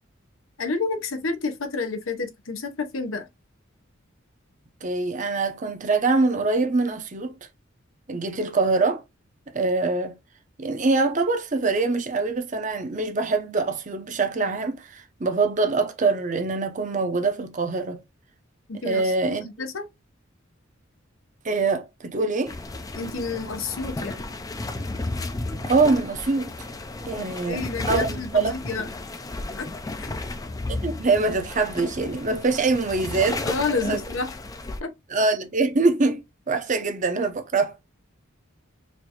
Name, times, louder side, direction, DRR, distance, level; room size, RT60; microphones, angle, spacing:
voice 1, 0.6-3.2 18.7-19.8 23.0-24.2 27.5-28.8 29.6-29.7 30.0-30.1 33.5-34.3 34.8-34.9, left 4 dB, 80° left, 0.8 m, -29 dB
voice 2, 4.8-7.3 8.1-9.0 9.5-10.2 10.6-18.0 18.8-19.5 21.4-22.5 25.7-26.5 27.1-28.5 30.7-33.4 33.7-34.0 35.1-37.8, right 3 dB, 40° right, 0.7 m, -24 dB
sound 1, 22.5-34.8, left 2 dB, 20° left, 0.4 m, -33 dB
4.3 x 2.6 x 2.8 m
head